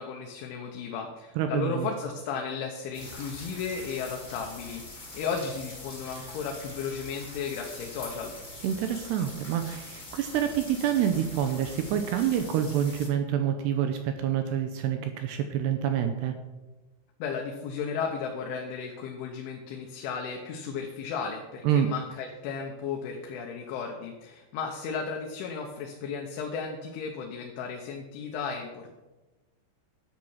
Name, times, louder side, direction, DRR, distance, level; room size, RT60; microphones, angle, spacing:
voice 1, 0.0-8.3 17.2-28.9, left 5 dB, 80° left, 1 dB, 3.5 m, -34 dB
voice 2, 1.4-1.9 8.6-16.3 21.6-21.9, right 9 dB, 75° right, 7 dB, 2.6 m, -27 dB
sound 1, 2.9-13.1, left 2 dB, 65° left, 0.4 m, -44 dB
11.5 x 7.8 x 7.2 m, 1.1 s
omnidirectional pair, 5.5 m